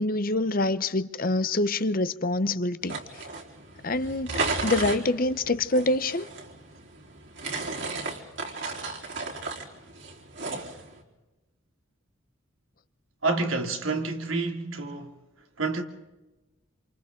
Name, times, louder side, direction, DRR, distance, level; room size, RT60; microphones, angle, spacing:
voice 1, 0.0-3.0 3.8-4.3 4.6-6.3, left 2 dB, 45° left, 0.8 m, -25 dB
sound 1, 2.8-11.0, right 3 dB, 60° right, 3.8 m, -34 dB
voice 2, 13.2-15.2 15.6-15.8, right 3 dB, 85° right, 2.8 m, -28 dB
28.5 x 28.0 x 3.8 m
head